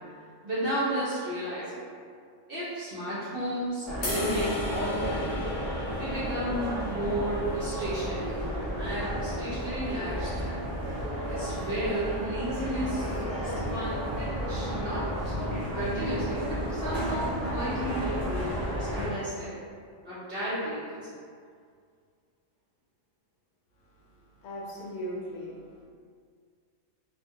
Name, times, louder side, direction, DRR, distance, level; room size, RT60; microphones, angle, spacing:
voice 1, 0.4-1.8 2.5-5.3 6.0-8.3 8.8-10.6 11.3-15.3 15.7-18.6 18.9-19.5 20.0-21.0, equal, 60° right, -10 dB, 0.6 m, -33 dB
sound 1, 3.8-19.1, equal, ahead, 0.7 m, -32 dB
sound 2, 4.0-10.3, left 2 dB, 60° left, 0.5 m, -40 dB
voice 2, 24.1-25.8, equal, 85° left, -4 dB, 1.1 m, -39 dB
2.3 x 2.2 x 2.7 m, 2.1 s
omnidirectional pair, 1.5 m